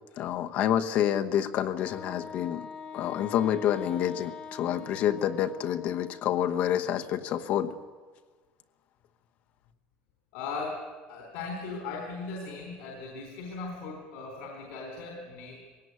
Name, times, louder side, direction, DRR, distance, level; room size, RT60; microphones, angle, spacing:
voice 1, 0.2-2.7 2.9-7.8, left 10 dB, 55° left, 8 dB, 1.0 m, -28 dB
Wind instrument woodwind instrument, 1.7-6.4, left 5 dB, 35° left, 1.7 m, -44 dB
voice 2, 10.3-15.6, left 3 dB, 85° left, 1 dB, 3.9 m, -38 dB
20.5 x 17.5 x 9.6 m, 1.5 s
cardioid pair, 155°, 3 cm